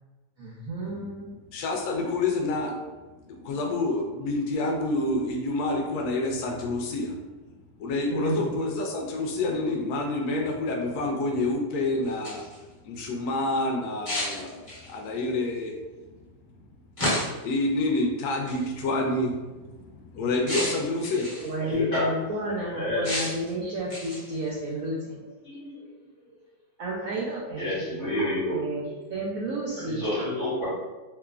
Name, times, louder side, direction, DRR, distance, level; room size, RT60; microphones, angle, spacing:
voice 1, 0.4-1.2 8.1-8.5 21.4-25.2 26.8-28.1 28.5-30.1, right 1 dB, 80° right, -6 dB, 0.7 m, -31 dB
voice 2, 1.5-2.8 3.3-7.2 7.8-12.4 12.8-15.8 17.4-21.3, left 2 dB, 70° left, 1 dB, 0.9 m, -28 dB
sound 1, 12.0-12.6 14.0-15.0 17.0-17.5 18.5-18.7 20.5-21.5 23.0-23.5 23.9-24.4, left 1 dB, 30° left, 0.7 m, -31 dB
voice 3, 21.6-22.1 22.7-23.1 25.4-25.8 27.6-28.6 29.9-30.7, left 1 dB, 45° left, -10 dB, 1.2 m, -29 dB
3.0 x 2.1 x 2.3 m, 1.2 s
omnidirectional pair, 2.0 m